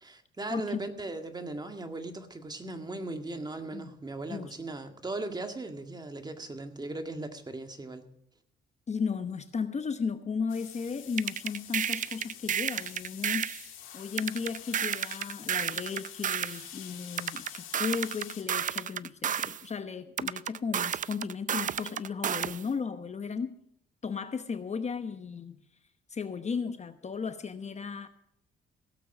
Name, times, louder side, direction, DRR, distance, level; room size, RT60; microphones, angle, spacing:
voice 1, 0.0-8.1, right 2 dB, 20° right, 6 dB, 1.9 m, -38 dB
voice 2, 8.9-13.5 13.9-23.5 24.0-25.6 26.1-28.1, left 5 dB, 35° left, 9 dB, 1.0 m, -35 dB
sound 1, 10.5-18.4, left 10 dB, 85° left, 2.6 m, -47 dB
sound 2, 11.2-13.6 14.2-16.6 17.2-19.6 20.2-22.6, right 8 dB, 40° right, 0.5 m, -31 dB
16.5 x 8.4 x 6.0 m, 0.72 s
cardioid pair, 90°, 20 cm